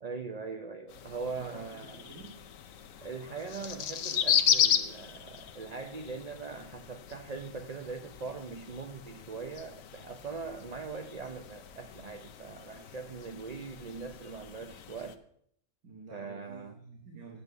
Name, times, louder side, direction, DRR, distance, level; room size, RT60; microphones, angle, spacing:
voice 1, 0.0-2.0 3.0-15.2 16.1-16.7, right 4 dB, 40° right, 6 dB, 0.6 m, -41 dB
sound 1, 0.9-15.2, left 8 dB, 70° left, 1.2 m, -35 dB
voice 2, 1.3-2.4 15.8-17.4, right 4 dB, 80° right, 0 dB, 2.3 m, -49 dB
9.7 x 7.8 x 8.0 m, 0.67 s
omnidirectional pair, 1.5 m